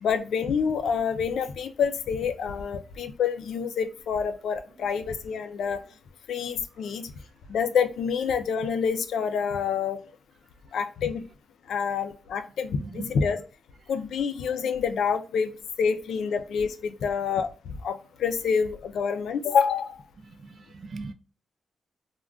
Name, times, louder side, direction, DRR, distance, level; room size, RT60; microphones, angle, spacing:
voice 1, 0.0-5.8 6.3-7.1 7.5-10.0 10.7-11.2 11.7-13.4 13.9-15.5 15.8-20.0, left 6 dB, 80° left, 8 dB, 0.4 m, -27 dB
voice 2, 12.8-13.1 20.3-21.1, right 3 dB, 45° right, 8 dB, 0.4 m, -39 dB
3.5 x 2.3 x 2.2 m, 0.37 s
wide cardioid pair, 135°, 0 cm